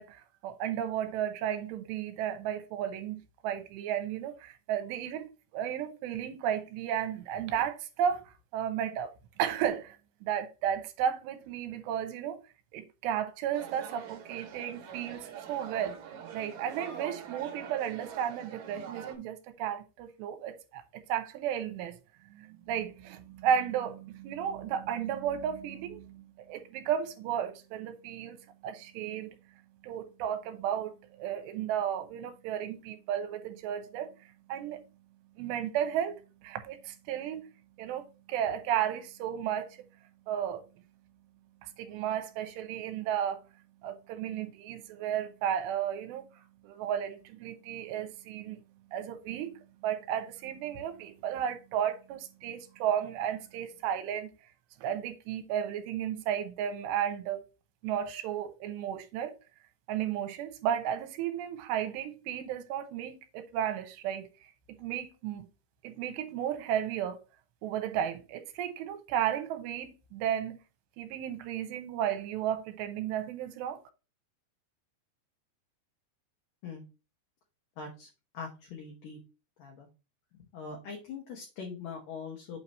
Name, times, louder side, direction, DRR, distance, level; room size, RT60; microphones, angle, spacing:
voice 1, 0.0-9.1 9.4-12.4 12.7-16.0 16.3-21.9 22.2-29.4 29.8-34.8 35.4-37.5 37.8-39.9 40.3-40.6 41.6-43.4 43.8-48.6 48.9-54.3 54.8-57.4 57.8-59.4 59.9-65.5 65.8-67.2 67.6-70.6 71.0-73.8, right 9 dB, 80° right, 3.0 m, -34 dB
sound 1, 13.5-19.1, right 8 dB, 60° right, 2.6 m, -44 dB
voice 2, 77.8-78.1 78.3-79.2 79.6-79.9 80.5-82.6, left 5 dB, 65° left, 2.4 m, -42 dB
8.4 x 3.0 x 5.3 m
omnidirectional pair, 5.1 m